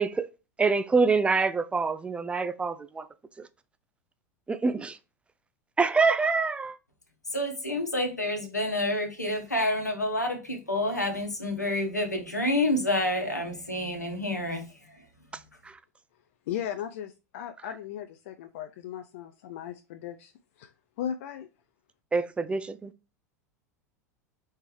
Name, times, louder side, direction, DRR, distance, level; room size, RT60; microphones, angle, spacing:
voice 1, 0.6-3.1 4.5-5.0 5.8-6.8 22.1-22.9, right 4 dB, 15° right, 0.3 m, -25 dB
voice 2, 7.3-14.6 14.9-15.0, left 1 dB, 85° left, 1.1 m, -28 dB
voice 3, 16.5-20.3 20.6-20.7 21.0-21.5, left 10 dB, 55° left, 0.4 m, -36 dB
4.3 x 3.3 x 3.2 m
figure-of-eight pair, 85°, 9 cm